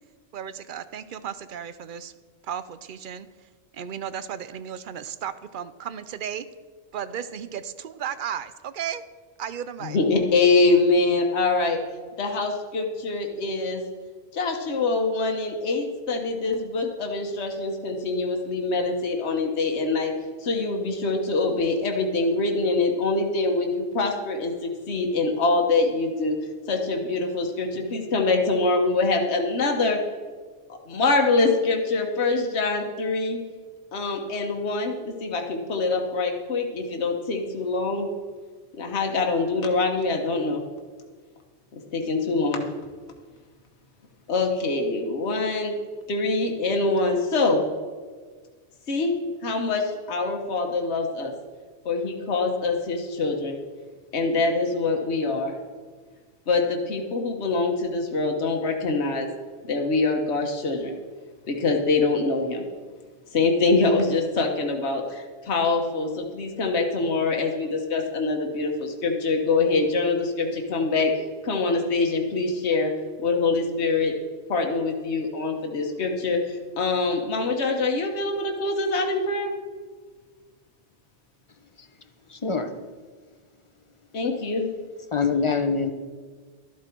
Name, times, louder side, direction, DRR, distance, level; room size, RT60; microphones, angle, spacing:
voice 1, 0.3-2.1 2.4-3.3 3.7-6.5 6.9-9.0 9.4-10.0, right 9 dB, 55° right, 14 dB, 0.7 m, -34 dB
voice 2, 9.8-11.8 12.2-13.8 14.3-20.1 20.4-26.4 26.7-30.0 30.7-33.4 33.9-38.1 38.8-40.6 41.7-42.6 44.3-45.8 46.1-47.6 48.9-49.2 49.4-51.3 51.8-53.6 54.1-55.5 56.5-59.3 59.7-61.0 61.5-62.7 63.3-71.1 71.4-72.9 73.2-74.1 74.5-79.5 84.1-84.7, left 3 dB, 70° left, 2 dB, 1.4 m, -24 dB
voice 3, 82.3-82.7 85.1-85.9, left 5 dB, 30° left, 8 dB, 0.8 m, -24 dB
13.0 x 12.0 x 4.5 m, 1.5 s
omnidirectional pair, 1.2 m